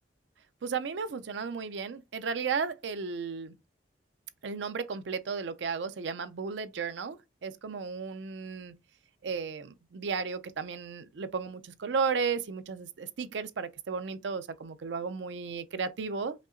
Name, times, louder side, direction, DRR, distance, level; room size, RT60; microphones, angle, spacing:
voice 1, 0.6-3.5 4.4-8.7 9.2-16.3, right 5 dB, 75° right, 0.5 m, -34 dB
5.2 x 2.8 x 2.5 m
head